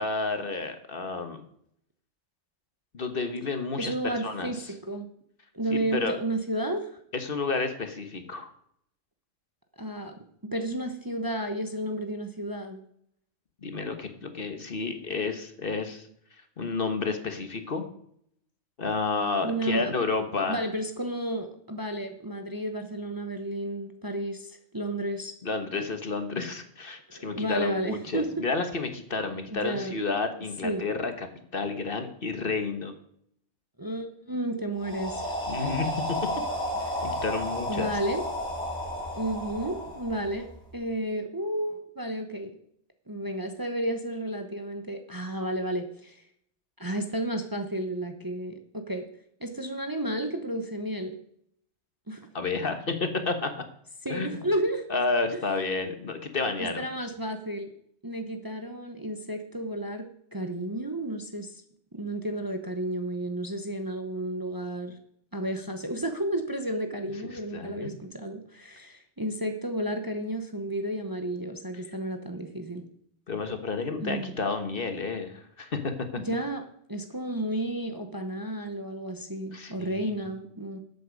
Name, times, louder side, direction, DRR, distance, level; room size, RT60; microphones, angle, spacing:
voice 1, 0.0-1.4 2.9-4.5 5.7-6.2 7.1-8.5 13.6-16.0 16.6-17.8 18.8-20.6 25.4-31.3 31.5-32.9 35.5-35.9 37.0-37.9 52.3-53.5 54.1-54.4 54.9-56.8 67.3-67.9 73.3-75.9 79.5-80.2, left 4 dB, 50° left, 8 dB, 1.4 m, -31 dB
voice 2, 3.8-5.1 5.5-7.0 9.8-10.1 10.4-12.8 19.3-20.0 20.5-25.3 27.1-28.4 29.5-30.0 30.6-30.9 33.8-35.4 36.9-37.0 37.7-38.2 39.2-40.5 40.7-42.5 43.1-46.2 46.8-49.0 49.4-51.1 52.1-52.3 54.0-54.8 55.3-55.4 56.6-57.7 58.0-61.6 61.9-65.0 65.3-72.8 74.0-74.3 76.2-76.6 76.9-80.8, right 1 dB, 20° right, 6 dB, 0.9 m, -32 dB
sound 1, 34.8-40.7, equal, 5° left, 4.5 m, -32 dB
13.0 x 8.2 x 5.2 m, 0.69 s
omnidirectional pair, 1.2 m